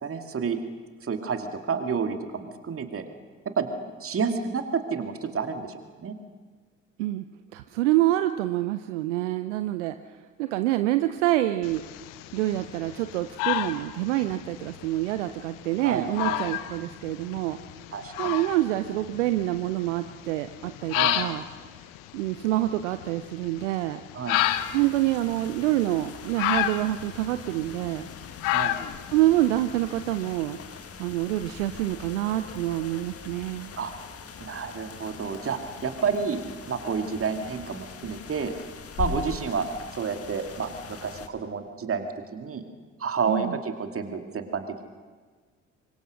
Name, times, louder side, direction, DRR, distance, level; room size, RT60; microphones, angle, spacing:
voice 1, 0.0-0.6 1.0-3.1 3.6-3.7 4.0-6.2 15.8-16.4 17.9-18.3 20.9-21.2 24.1-24.4 28.5-28.8 33.8-33.9 34.4-38.5 39.0-39.7 39.9-42.6 43.0-44.8, right 5 dB, 35° right, 6 dB, 2.4 m, -30 dB
voice 2, 7.5-11.8 12.3-17.6 18.2-21.4 22.1-24.0 24.7-28.0 29.1-33.7 43.3-43.6, right 15 dB, 70° right, 10 dB, 0.8 m, -27 dB
sound 1, 11.6-30.3, left 14 dB, 60° left, 1.0 m, -32 dB
sound 2, 24.3-41.3, left 6 dB, 40° left, 1.8 m, -42 dB
25.0 x 22.5 x 6.4 m, 1.5 s
figure-of-eight pair, 50°, 37 cm